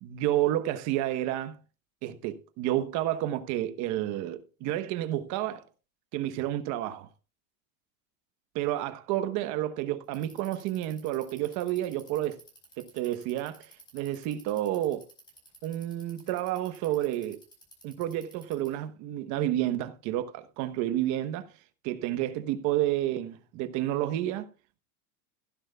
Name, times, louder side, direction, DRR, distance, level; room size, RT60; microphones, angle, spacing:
voice 1, 0.0-1.6 2.0-5.6 6.1-7.1 8.5-12.4 12.8-15.1 15.6-17.4 17.8-21.5 21.8-24.5, right 13 dB, 40° right, 1.1 m, -30 dB
Bicycle, 10.0-18.8, right 1 dB, 10° left, 4.7 m, -54 dB
15.5 x 11.0 x 2.3 m
supercardioid pair, 155°, 44 cm